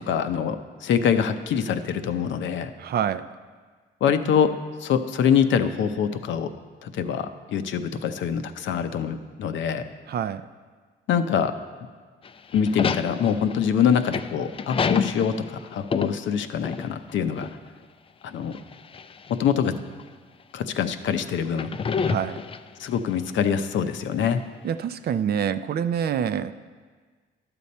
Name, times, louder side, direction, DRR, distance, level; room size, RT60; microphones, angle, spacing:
voice 1, 0.0-2.7 4.0-4.5 4.8-6.5 6.8-9.9 11.1-11.5 12.5-17.5 18.2-18.6 19.3-19.8 20.5-21.7 22.8-24.4, left 7 dB, 70° left, 9 dB, 0.6 m, -24 dB
voice 2, 2.8-3.3 10.1-10.5 22.0-22.4 24.6-26.5, right 8 dB, 55° right, 12 dB, 0.4 m, -26 dB
sound 1, 12.2-17.1 17.4-17.5 18.5-19.3 20.0-20.1 21.5-22.9, left 6 dB, 30° left, 0.3 m, -28 dB
11.5 x 6.9 x 4.2 m, 1.5 s
cardioid pair, 90°, 20 cm